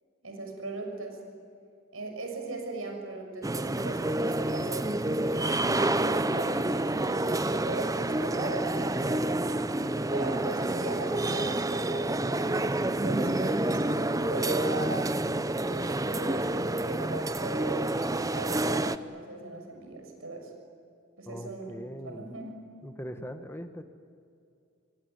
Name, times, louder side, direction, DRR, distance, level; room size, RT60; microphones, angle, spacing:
voice 1, 0.2-1.2 1.9-9.3 10.1-15.1 15.6-20.5 21.2-21.7 22.0-22.6, right 3 dB, 85° right, 3 dB, 6.6 m, -39 dB
sound 1, 3.4-19.0, right 1 dB, 15° right, 0.8 m, -28 dB
voice 2, 21.2-22.4 22.8-23.8, equal, 10° left, 8 dB, 1.6 m, -41 dB
25.5 x 23.5 x 9.7 m, 2.5 s
head